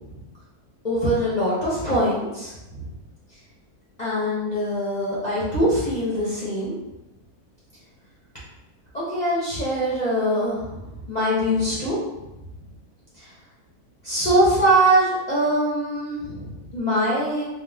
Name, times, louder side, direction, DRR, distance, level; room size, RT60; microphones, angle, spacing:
voice 1, 0.8-2.5 4.0-6.7 8.9-10.8 11.1-11.9 13.2-13.3 14.0-17.5, right 1 dB, 40° left, -8 dB, 0.6 m, -22 dB
2.9 x 2.1 x 3.4 m, 0.97 s
omnidirectional pair, 1.7 m